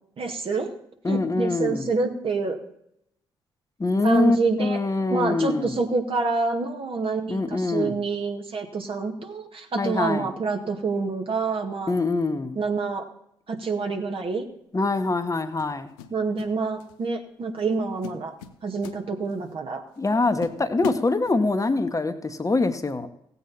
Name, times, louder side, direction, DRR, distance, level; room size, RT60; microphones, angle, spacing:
voice 1, 0.2-0.7 1.1-2.6 4.0-4.8 5.1-11.9 12.6-13.1 13.5-14.5 16.1-18.3 18.6-19.8, right 4 dB, 50° right, 3 dB, 2.0 m, -27 dB
voice 2, 1.0-1.9 3.8-5.7 7.3-7.9 9.8-10.3 11.9-12.6 14.7-15.9 20.0-23.1, left 3 dB, 30° left, 7 dB, 1.3 m, -24 dB
sound 1, 14.2-14.5 15.6-16.5 16.8-17.1 17.6-17.7 18.0-19.5 19.9-20.0 20.4-21.7, left 9 dB, 85° left, 0.6 m, -39 dB
16.0 x 8.4 x 4.3 m, 0.75 s
hypercardioid pair, 45°, 12 cm